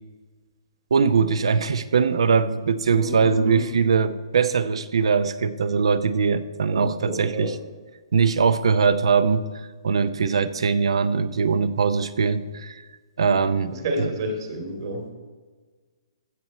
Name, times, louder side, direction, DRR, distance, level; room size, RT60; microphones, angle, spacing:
voice 1, 0.9-7.6 8.1-9.5 9.8-12.8 13.2-13.7 14.0-14.1, right 5 dB, 75° right, 14 dB, 0.6 m, -21 dB
voice 2, 2.9-3.7 6.7-7.5 13.2-13.3 13.7-15.1, right 1 dB, 55° right, 2 dB, 2.6 m, -30 dB
15.5 x 6.1 x 4.2 m, 1.4 s
hypercardioid pair, 155°, 3 cm